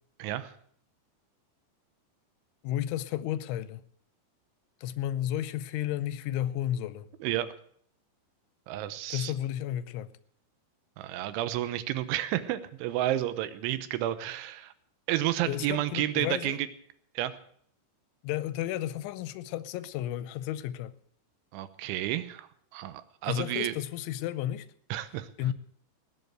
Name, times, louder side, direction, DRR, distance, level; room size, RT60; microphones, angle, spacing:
voice 1, 0.2-0.5 7.2-7.5 8.7-9.3 11.0-14.7 15.1-16.7 17.2-17.4 21.5-23.7 24.9-25.3, right 13 dB, 85° right, 3.3 m, -31 dB
voice 2, 2.6-3.8 4.8-7.1 9.1-10.1 15.5-16.6 18.2-21.0 23.3-24.7 25.4-25.5, left 12 dB, 90° left, 3.1 m, -32 dB
19.5 x 7.7 x 7.9 m
omnidirectional pair, 5.3 m